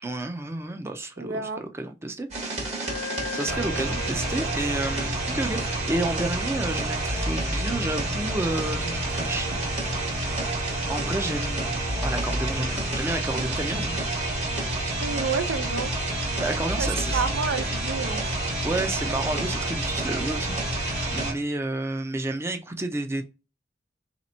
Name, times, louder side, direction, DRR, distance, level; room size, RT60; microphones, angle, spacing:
voice 1, 0.0-2.3 2.8-3.0 3.3-9.9 10.9-14.0 16.4-17.3 18.6-23.2, right 2 dB, 15° right, 0.5 m, -31 dB
voice 2, 1.2-1.6 15.0-15.9 16.8-18.3, right 5 dB, 80° right, 0.5 m, -29 dB
sound 1, 2.3-21.3, right 1 dB, 40° right, 1.1 m, -28 dB
Wind instrument woodwind instrument, 2.8-10.2, left 2 dB, 85° left, 0.7 m, -41 dB
sound 2, 6.0-6.3 6.6-6.8 7.1-8.5 8.7-9.0 9.3-9.5 9.8-10.1 10.3-10.6 10.9-11.2 11.4-11.7 11.9-12.2 12.5-12.8, left 2 dB, 35° left, 0.6 m, -43 dB
3.2 x 2.9 x 4.1 m
head